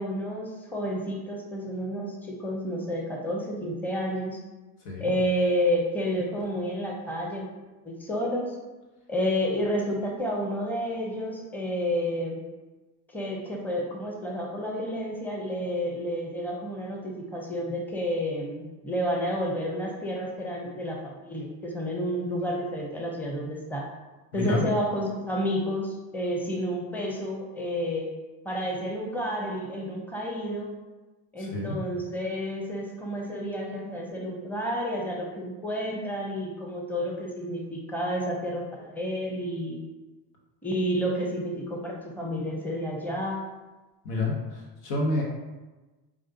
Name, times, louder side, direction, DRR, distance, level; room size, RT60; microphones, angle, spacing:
voice 1, 0.0-4.4 5.0-7.5 7.8-8.5 9.1-12.4 13.1-23.9 24.3-28.1 28.4-30.7 31.3-39.8 40.6-43.4, equal, 5° left, -1 dB, 0.8 m, -30 dB
voice 2, 24.3-24.6 31.4-31.8 44.0-45.2, left 2 dB, 70° left, -2 dB, 1.1 m, -29 dB
4.8 x 2.4 x 2.8 m, 1.1 s
hypercardioid pair, 65°, 48 cm